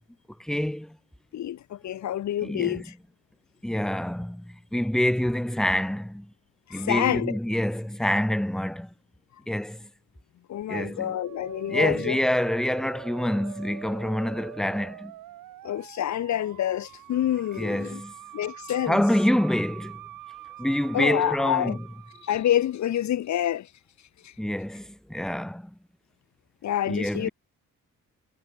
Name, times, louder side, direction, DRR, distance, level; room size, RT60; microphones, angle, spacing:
voice 1, 0.4-1.0 2.4-2.9 3.6-6.3 6.7-8.9 9.5-9.9 10.7-11.2 11.7-15.1 17.6-18.1 18.9-20.0 20.6-21.8 24.4-25.7 26.9-27.3, left 1 dB, ahead, 1.3 m, -26 dB
voice 2, 1.3-2.9 6.7-7.3 10.5-12.2 15.6-18.0 18.3-19.0 20.9-21.8 22.2-23.7 24.2-24.3 26.6-27.3, left 11 dB, 60° left, 0.7 m, -27 dB
Musical instrument, 11.0-22.8, right 14 dB, 90° right, 3.5 m, -45 dB
cardioid pair, 70°, 32 cm